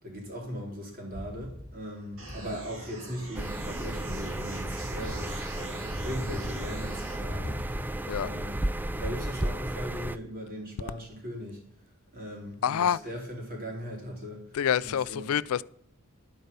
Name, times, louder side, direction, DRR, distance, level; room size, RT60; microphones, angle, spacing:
voice 1, 0.0-7.9 8.2-11.6 12.1-15.3, equal, 45° right, 3.8 m, -39 dB
sound 1, 1.1-1.8 2.1-2.9 3.7-3.8 4.8-5.5 5.8-8.2, left 1 dB, 25° right, 3.4 m, -41 dB
sound 2, 2.2-7.2, right 2 dB, 65° right, 3.3 m, -44 dB
sound 3, 3.3-10.2, right 1 dB, 10° right, 0.3 m, -33 dB
voice 2, 12.6-13.0 14.5-15.6, left 8 dB, 80° left, 0.4 m, -27 dB
11.5 x 9.1 x 5.4 m
head